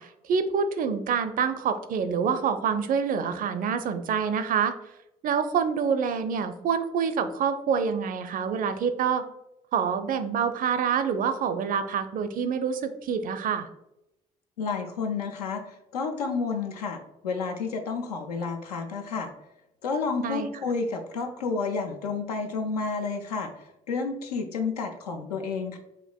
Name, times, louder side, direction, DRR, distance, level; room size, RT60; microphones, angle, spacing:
voice 1, 0.0-4.7 5.2-9.2 9.7-13.7 20.2-20.5, right 6 dB, 45° right, 9 dB, 0.4 m, -26 dB
voice 2, 14.6-19.3 19.8-25.8, left 4 dB, 85° left, 5 dB, 0.4 m, -30 dB
5.2 x 2.4 x 2.2 m, 0.88 s
figure-of-eight pair, 45°, 19 cm